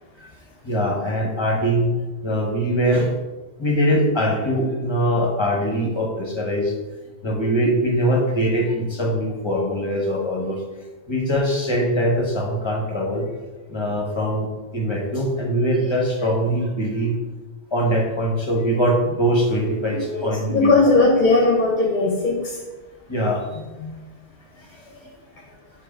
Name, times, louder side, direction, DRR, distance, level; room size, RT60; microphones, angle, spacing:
voice 1, 0.6-1.9 2.2-3.1 3.6-6.7 7.2-10.6 11.1-13.2 13.7-14.5 14.7-17.2 17.7-20.7 23.1-23.4 24.8-24.9, equal, 25° left, 0 dB, 1.2 m, -22 dB
voice 2, 20.0-22.6 23.8-24.0, left 3 dB, 45° left, -1 dB, 0.9 m, -18 dB
7.6 x 3.0 x 5.1 m, 1.2 s
omnidirectional pair, 1.2 m